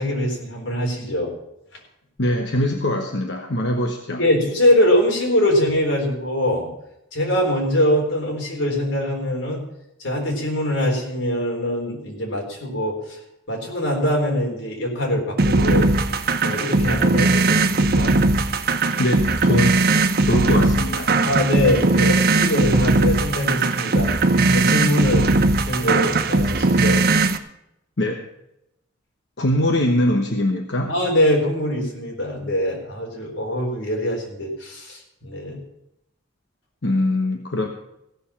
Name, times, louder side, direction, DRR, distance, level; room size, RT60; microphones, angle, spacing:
voice 1, 0.0-1.3 4.2-6.7 7.1-9.6 10.0-13.2 13.5-15.9 16.4-18.2 21.2-24.1 24.5-25.3 25.7-27.0 30.9-35.6, left 1 dB, 85° left, 0 dB, 4.1 m, -23 dB
voice 2, 2.2-4.2 19.0-19.8 20.2-21.1 28.0-28.2 29.4-30.9 36.8-37.7, left 1 dB, 60° left, 3 dB, 1.0 m, -22 dB
sound 1, 15.4-27.4, right 3 dB, 50° right, 0.8 m, -19 dB
16.0 x 6.9 x 7.1 m, 0.82 s
head